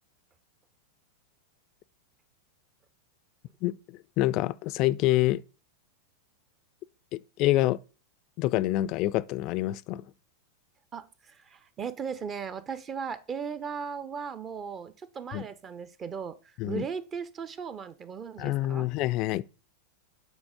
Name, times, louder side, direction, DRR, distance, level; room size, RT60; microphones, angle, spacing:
voice 1, 3.6-5.4 7.1-7.8 8.4-10.0 15.3-15.4 16.6-16.9 18.4-19.4, left 16 dB, 40° left, 0.4 m, -27 dB
voice 2, 10.9-18.9, right 6 dB, 25° right, 0.6 m, -37 dB
8.2 x 4.1 x 4.9 m
figure-of-eight pair, 90°, 0 cm